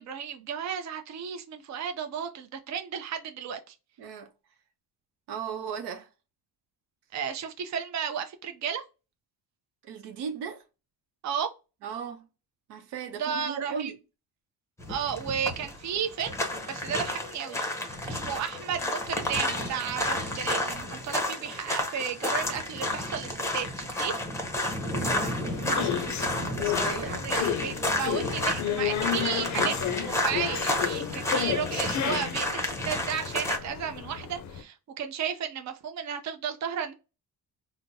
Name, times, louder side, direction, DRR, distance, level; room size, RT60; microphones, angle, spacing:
voice 1, 0.0-3.7 7.1-8.8 11.2-11.5 13.2-13.9 14.9-16.3 16.7-24.1 27.0-36.9, right 8 dB, 45° right, 0.6 m, -33 dB
voice 2, 4.0-4.3 5.3-6.1 9.8-10.6 11.8-12.3 12.7-14.0 24.9-27.5, right 7 dB, 85° right, 0.7 m, -37 dB
sound 1, 14.8-33.6, left 1 dB, 5° left, 0.7 m, -31 dB
sound 2, 25.5-34.6, left 10 dB, 50° left, 0.5 m, -32 dB
3.8 x 2.1 x 2.6 m
cardioid pair, 115°, 39 cm